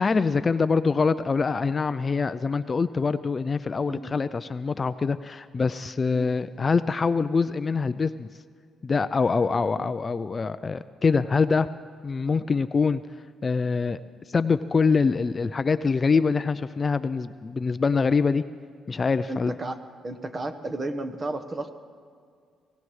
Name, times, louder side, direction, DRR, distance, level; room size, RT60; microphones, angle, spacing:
voice 1, 0.0-8.3 8.8-11.7 12.0-13.0 13.4-14.0 14.3-18.4 18.9-19.5, left 4 dB, 35° left, 13 dB, 0.4 m, -24 dB
voice 2, 3.8-4.2 6.1-6.2 9.8-9.9 19.3-19.8 20.0-21.7, right 2 dB, 30° right, 9 dB, 1.1 m, -33 dB
24.0 x 17.5 x 3.2 m, 2.1 s
cardioid pair, 90°, 0 cm